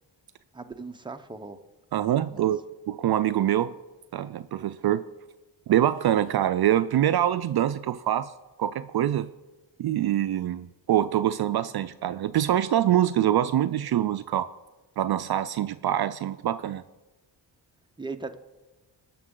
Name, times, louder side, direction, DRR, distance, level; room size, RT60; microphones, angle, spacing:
voice 1, 0.5-1.6 2.3-2.5 18.0-18.3, right 3 dB, 10° right, 6 dB, 0.8 m, -38 dB
voice 2, 1.9-2.6 2.9-3.7 4.1-5.0 5.7-8.3 8.6-9.3 9.8-14.5 15.0-16.8, right 11 dB, 60° right, 12 dB, 0.5 m, -24 dB
20.0 x 6.9 x 3.8 m, 1.2 s
cardioid pair, 90°, 43 cm